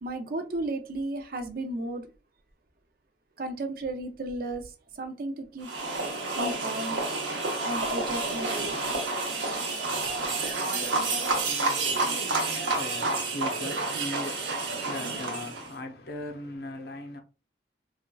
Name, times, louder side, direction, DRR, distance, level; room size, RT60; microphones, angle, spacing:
voice 1, 0.0-2.1 3.4-5.7 6.4-7.0 7.6-8.7, right 1 dB, 50° right, 0.5 m, -34 dB
sound 1, 5.6-15.7, right 3 dB, 85° right, 0.9 m, -29 dB
voice 2, 9.6-17.2, left 2 dB, 55° left, 0.7 m, -40 dB
4.2 x 2.4 x 2.2 m
head